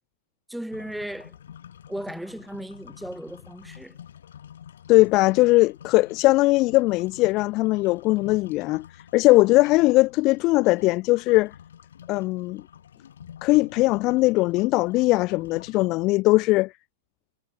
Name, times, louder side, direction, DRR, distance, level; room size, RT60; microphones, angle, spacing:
voice 1, 0.5-1.3 1.9-4.0, right 1 dB, ahead, 2.4 m, -36 dB
sound 1, 0.7-15.9, left 9 dB, 90° left, 4.1 m, -47 dB
voice 2, 4.9-8.8 9.1-11.5 12.1-12.6 13.4-16.7, left 21 dB, 40° left, 0.3 m, -20 dB
hypercardioid pair, 145°, 0 cm